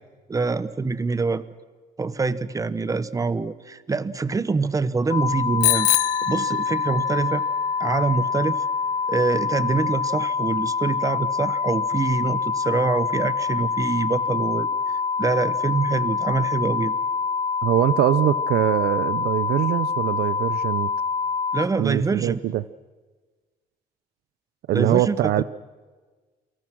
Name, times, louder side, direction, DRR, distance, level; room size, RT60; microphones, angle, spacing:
voice 1, 0.3-1.4 2.0-7.4 7.8-8.6 9.1-14.7 15.2-16.9 21.5-22.4 24.7-25.4, right 4 dB, 20° right, 16 dB, 1.0 m, -25 dB
sound 1, 5.1-21.7, left 5 dB, 35° left, 1.0 m, -25 dB
Bicycle bell, 5.6-7.2, left 18 dB, 85° left, 0.8 m, -24 dB
voice 2, 17.6-20.9 21.8-22.6 24.7-25.4, right 13 dB, 70° right, 18 dB, 0.7 m, -22 dB
28.5 x 24.5 x 6.2 m, 1.4 s
cardioid pair, 110°, 17 cm